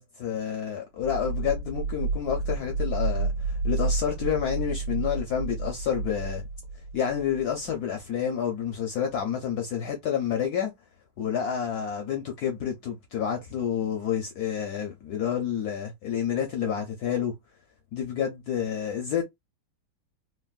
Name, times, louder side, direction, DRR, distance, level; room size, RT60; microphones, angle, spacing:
voice 1, 0.0-6.4 6.9-10.7 11.2-17.3 17.9-19.2, left 8 dB, 75° left, 0.8 m, -29 dB
sound 1, 1.0-7.7, right 3 dB, 70° right, 1.1 m, -30 dB
3.4 x 2.2 x 2.3 m
omnidirectional pair, 2.4 m